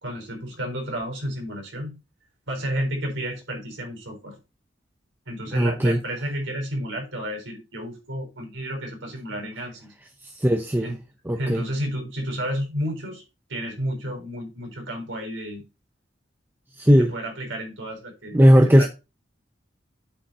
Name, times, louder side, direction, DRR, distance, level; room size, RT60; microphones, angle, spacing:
voice 1, 0.0-2.0 2.5-4.4 5.3-9.9 10.8-10.9 11.3-13.2 13.5-15.6 16.9-18.4 18.8-18.9, equal, 90° right, 4.2 m, -31 dB
voice 2, 5.5-6.0 10.2-11.0 11.3-11.6 16.8-17.1 18.3-18.9, equal, 10° right, 0.6 m, -17 dB
8.4 x 5.4 x 4.4 m
head